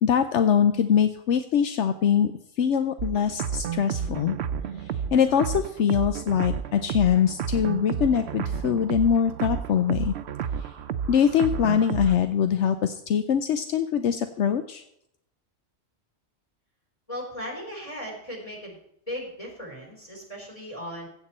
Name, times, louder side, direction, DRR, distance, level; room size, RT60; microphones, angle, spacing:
voice 1, 0.0-2.3 2.6-4.4 5.1-10.1 11.1-14.8, left 8 dB, 80° left, 9 dB, 1.0 m, -23 dB
sound 1, 3.0-12.2, right 8 dB, 65° right, 0.9 m, -31 dB
voice 2, 17.1-18.8 19.1-21.1, equal, 30° left, 1 dB, 4.1 m, -37 dB
15.5 x 8.2 x 4.3 m, 0.75 s
omnidirectional pair, 1.2 m